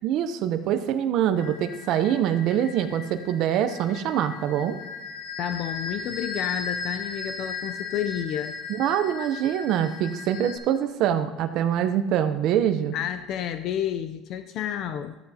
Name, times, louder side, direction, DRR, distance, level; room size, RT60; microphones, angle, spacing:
voice 1, 0.0-4.8 8.7-12.9, right 10 dB, 50° right, 9 dB, 0.6 m, -24 dB
sound 1, 1.4-10.6, left 4 dB, 85° left, 3.9 m, -37 dB
voice 2, 5.4-8.6 12.9-15.2, left 10 dB, 45° left, 10 dB, 0.4 m, -30 dB
13.5 x 12.5 x 2.8 m, 1.1 s
cardioid pair, 160°, 0 cm